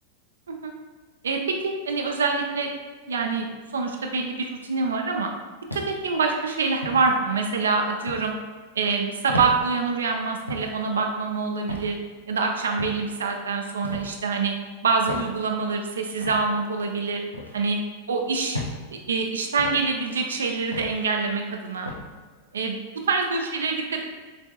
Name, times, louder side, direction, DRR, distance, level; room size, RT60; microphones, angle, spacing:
voice 1, 1.2-2.7 3.1-3.5 3.7-5.3 5.7-8.4 8.8-12.0 12.3-14.5 14.8-17.2 17.5-17.8 18.1-18.6 19.1-21.9 22.5-22.8 23.1-24.0, right 4 dB, 70° right, 2 dB, 0.5 m, -25 dB
sound 1, 5.7-6.1 6.8-7.1 8.1-8.3 9.3-9.6 10.5-10.7 11.7-11.9 12.8-13.0 13.8-14.1 15.1-15.3 16.2-16.4 17.3-17.6 18.5-18.8 19.6-19.8 20.7-21.0 21.9-22.1, left 1 dB, 90° left, 0.6 m, -33 dB
6.7 x 3.5 x 2.3 m, 1.4 s
figure-of-eight pair, 90°, 0 cm